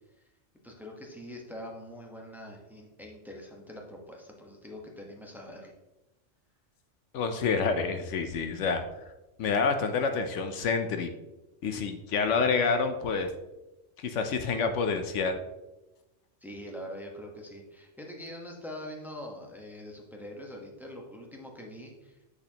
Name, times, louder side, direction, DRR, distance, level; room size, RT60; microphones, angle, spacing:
voice 1, 0.6-5.7 16.4-22.2, equal, ahead, 0 dB, 1.1 m, -43 dB
voice 2, 7.1-8.8 9.4-11.1 11.6-13.3 14.0-15.4, left 5 dB, 80° left, 7 dB, 1.0 m, -28 dB
8.4 x 6.6 x 2.9 m, 1.0 s
omnidirectional pair, 1.2 m